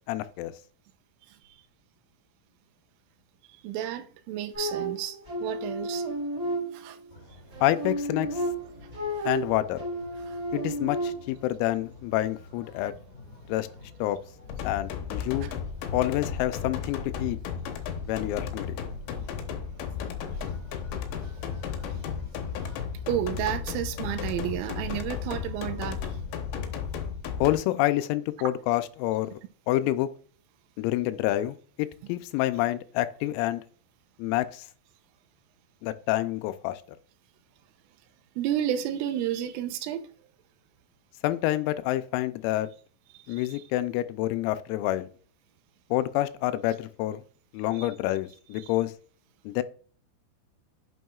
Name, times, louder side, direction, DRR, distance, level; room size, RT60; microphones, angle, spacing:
voice 1, 0.1-0.5 7.6-8.4 9.3-9.8 10.5-12.9 13.5-13.7 14.0-14.2 14.6-15.5 15.9-17.4 18.1-18.8 27.4-29.3 29.7-30.1 30.8-33.6 34.2-34.6 35.8-36.8 41.2-42.7 43.3-45.1 45.9-47.2 47.5-48.9 49.5-49.6, left 15 dB, 90° left, 3.3 m, -28 dB
voice 2, 3.6-6.0 6.7-7.0 9.2-9.3 10.3-10.4 15.4-15.5 20.3-20.5 21.1-21.3 21.8-21.9 22.5-22.7 23.1-26.1 38.4-40.0 43.3-43.6 47.8-47.9 48.6-48.7, right 11 dB, 85° right, 3.2 m, -32 dB
sound 1, 4.5-7.1 7.5-11.5, right 1 dB, 20° right, 4.0 m, -32 dB
sound 2, 7.1-26.6, left 3 dB, 35° left, 1.8 m, -49 dB
sound 3, 14.5-27.6, left 7 dB, 75° left, 2.8 m, -34 dB
9.2 x 6.2 x 2.3 m
omnidirectional pair, 5.9 m